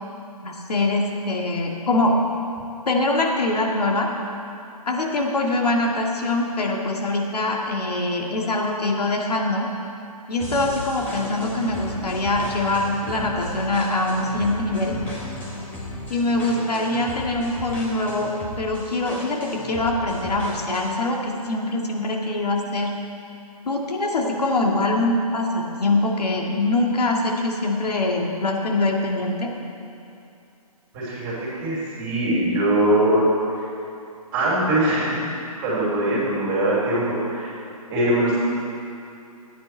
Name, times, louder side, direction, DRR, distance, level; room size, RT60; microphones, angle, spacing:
voice 1, 0.4-2.2 2.9-4.1 4.9-9.7 10.3-15.0 15.2-15.3 16.1-22.9 23.7-29.5, left 2 dB, 90° left, 0 dB, 2.0 m, -23 dB
sound 1, 10.4-21.0, equal, 10° left, 1.4 m, -36 dB
voice 2, 30.9-33.2 33.6-33.7 34.3-35.3 35.6-37.5 37.9-38.4, right 1 dB, 20° right, -7 dB, 2.9 m, -22 dB
14.0 x 9.5 x 4.5 m, 2.6 s
hypercardioid pair, 160°, 20 cm